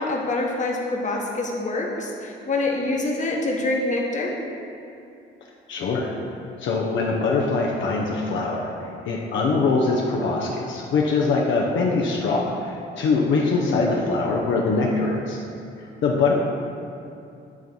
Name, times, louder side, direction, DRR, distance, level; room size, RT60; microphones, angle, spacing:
voice 1, 0.0-4.3 13.7-14.0, left 2 dB, 40° left, -1 dB, 1.1 m, -26 dB
voice 2, 5.7-6.1 6.6-15.4 15.8-16.3, left 3 dB, 70° left, -2 dB, 0.8 m, -23 dB
9.3 x 3.1 x 5.4 m, 2.6 s
cardioid pair, 90°, 20 cm